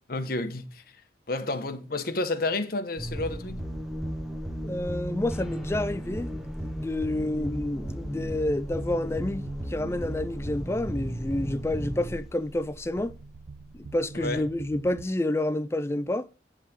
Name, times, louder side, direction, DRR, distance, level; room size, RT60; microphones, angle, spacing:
voice 1, 0.1-0.8 1.3-3.6 14.1-14.4, left 2 dB, 50° left, 1.0 m, -30 dB
sound 1, 3.0-13.2, equal, ahead, 0.8 m, -35 dB
voice 2, 4.6-13.2 13.8-16.3, left 1 dB, 15° left, 0.3 m, -29 dB
sound 2, 8.1-15.1, right 4 dB, 85° right, 0.5 m, -48 dB
10.5 x 3.6 x 6.7 m
head